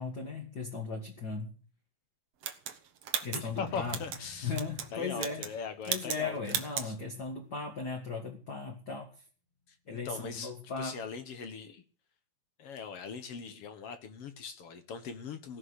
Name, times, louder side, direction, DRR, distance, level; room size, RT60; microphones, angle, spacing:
voice 1, 0.0-1.6 3.2-4.0 4.4-5.5 5.9-9.1 9.9-11.0, left 4 dB, 35° left, 2 dB, 1.9 m, -37 dB
sound 1, 2.4-4.2 4.5-4.9 5.2-5.6 5.8-6.2 6.5-6.9, right 8 dB, 55° right, 2.0 m, -35 dB
voice 2, 3.3-4.5 4.9-6.4 6.8-6.9 10.0-11.8 12.6-15.6, left 6 dB, 60° left, 10 dB, 1.6 m, -40 dB
sound 2, 3.4-8.0 8.3-8.5 9.0-9.1, left 3 dB, 80° left, 4.4 m, -53 dB
16.5 x 6.4 x 9.6 m, 0.40 s
omnidirectional pair, 4.0 m